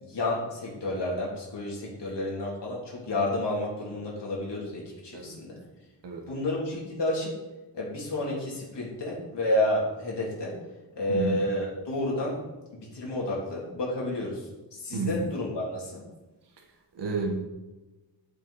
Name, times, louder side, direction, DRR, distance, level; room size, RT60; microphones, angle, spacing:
voice 1, 0.0-5.6 6.3-7.3 7.7-10.5 10.9-12.4 12.7-16.0, left 1 dB, 85° left, -4 dB, 2.9 m, -30 dB
voice 2, 6.0-6.4 11.1-11.4 14.9-15.2 16.9-17.4, right 4 dB, 85° right, 3 dB, 1.3 m, -31 dB
11.5 x 5.8 x 4.1 m, 1.1 s
wide cardioid pair, 95°, 41 cm